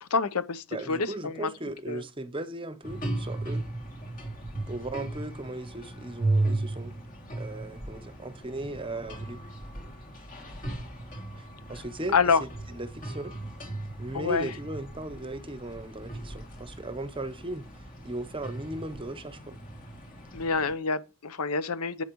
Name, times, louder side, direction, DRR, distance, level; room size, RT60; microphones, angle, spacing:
voice 1, 0.0-1.5 1.9-2.0 12.1-12.4 14.1-14.5 20.3-22.0, left 4 dB, 85° left, 0.8 m, -27 dB
voice 2, 0.7-3.7 4.7-6.9 7.3-9.4 11.4-13.3 14.0-19.6, right 2 dB, 25° right, 0.8 m, -37 dB
sound 1, 2.8-20.7, right 2 dB, 40° left, 2.6 m, -36 dB
10.5 x 8.6 x 3.1 m
head